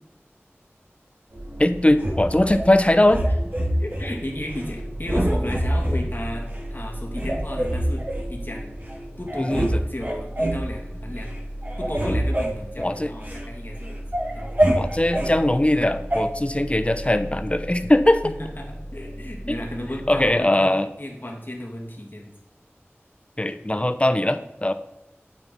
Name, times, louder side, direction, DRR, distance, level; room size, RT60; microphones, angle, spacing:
sound 1, 1.3-20.3, equal, 85° right, 3.8 m, -36 dB
voice 1, 1.6-3.2 9.4-9.8 12.8-13.1 14.7-18.3 19.5-19.6 20.1-20.9 23.4-24.7, left 1 dB, 25° left, 10 dB, 0.8 m, -20 dB
sound 2, 2.0-2.6 3.1-4.1 4.5-4.7 5.0-6.0 6.5-6.6 7.1-8.3 8.9-9.0 9.3-9.7 10.0-10.6 11.1-11.4 11.6-13.4 13.8-15.3 16.1-16.2, right 1 dB, 45° right, 2.5 m, -25 dB
voice 2, 3.6-8.7 9.2-11.3 11.8-14.0 14.3-14.5 18.2-20.7 21.0-22.3 24.3-24.4, left 1 dB, 50° left, 0 dB, 2.5 m, -34 dB
9.0 x 8.9 x 4.1 m, 0.93 s
wide cardioid pair, 45°, 4 cm